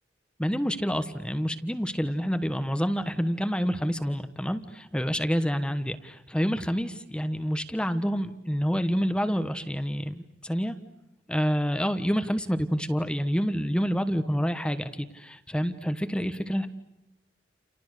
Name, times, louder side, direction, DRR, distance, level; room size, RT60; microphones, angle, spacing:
voice 1, 0.4-10.8 11.3-16.7, equal, 5° left, 9 dB, 1.2 m, -28 dB
30.0 x 29.5 x 6.7 m, 0.88 s
head